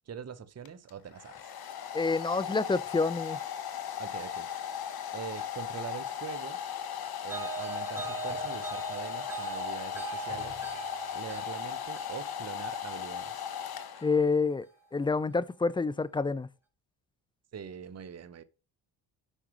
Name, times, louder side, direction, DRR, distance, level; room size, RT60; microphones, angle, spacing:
voice 1, 0.1-1.5 4.0-4.5 5.1-6.6 7.2-10.6 11.1-13.5 17.5-18.4, right 7 dB, 35° right, 0.9 m, -43 dB
Domestic sounds home sounds, 0.6-14.4, left 9 dB, 50° left, 1.2 m, -37 dB
voice 2, 1.9-3.4 14.0-16.5, left 4 dB, 10° left, 0.3 m, -28 dB
sound 1, 7.3-14.4, right 5 dB, 5° right, 3.3 m, -41 dB
9.8 x 6.1 x 3.1 m
supercardioid pair, 65°, 47 cm